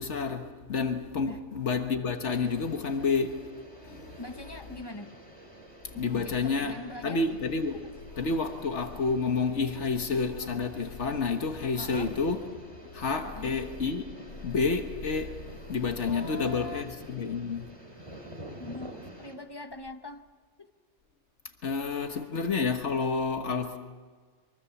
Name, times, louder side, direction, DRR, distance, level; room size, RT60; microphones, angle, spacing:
voice 1, 0.0-3.5 3.8-4.2 6.0-6.7 7.0-7.9 8.1-17.7 21.6-23.8, left 4 dB, 80° left, 1.6 m, -30 dB
sound 1, 2.2-19.4, right 1 dB, 25° right, 3.1 m, -49 dB
voice 2, 4.2-5.1 5.9-7.3 7.7-7.9 11.8-12.1 13.2-13.6 16.0-16.9 18.6-20.2 20.6-20.7, left 2 dB, 20° left, 1.0 m, -42 dB
24.0 x 23.5 x 7.2 m
omnidirectional pair, 1.2 m